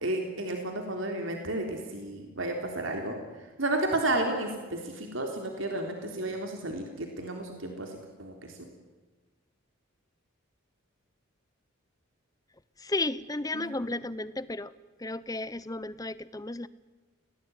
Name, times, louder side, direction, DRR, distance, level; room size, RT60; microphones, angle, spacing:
voice 1, 0.0-8.6 13.5-13.9, right 2 dB, 65° right, 3 dB, 3.5 m, -32 dB
voice 2, 12.8-14.7 15.0-16.7, left 2 dB, 15° left, 16 dB, 0.8 m, -33 dB
29.0 x 19.0 x 9.5 m, 1.3 s
head